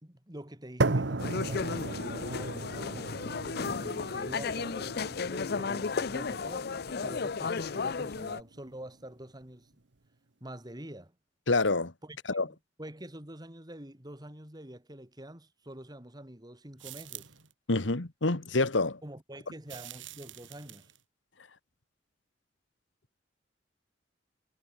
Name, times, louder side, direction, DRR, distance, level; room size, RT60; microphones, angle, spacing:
voice 1, 0.0-3.3 3.5-5.0 5.3-6.7 7.0-9.7 10.4-11.1 12.0-17.3 19.0-20.9, right 1 dB, 20° right, 2.8 m, -46 dB
sound 1, 0.8-8.8, right 2 dB, 70° right, 1.2 m, -36 dB
sound 2, 1.2-8.4, left 5 dB, 55° left, 0.6 m, -34 dB
voice 2, 11.5-11.9 12.3-12.5 17.7-19.0, left 3 dB, 80° left, 1.7 m, -27 dB
sound 3, 16.8-17.5 19.7-21.0, right 13 dB, 85° right, 6.3 m, -46 dB
head